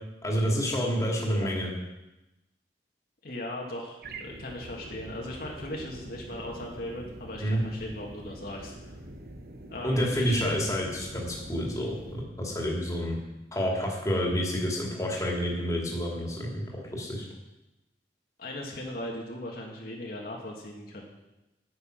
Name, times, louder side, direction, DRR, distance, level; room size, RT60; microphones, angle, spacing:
voice 1, 0.2-1.7 7.4-7.6 9.8-13.2 13.5-17.3, equal, 20° left, -2 dB, 2.5 m, -29 dB
voice 2, 0.9-1.5 3.2-8.8 9.7-10.6 18.4-21.0, left 1 dB, 55° left, -2 dB, 2.0 m, -38 dB
sound 1, 4.0-12.2, right 1 dB, 60° right, 1.1 m, -44 dB
9.6 x 9.5 x 6.5 m, 0.97 s
head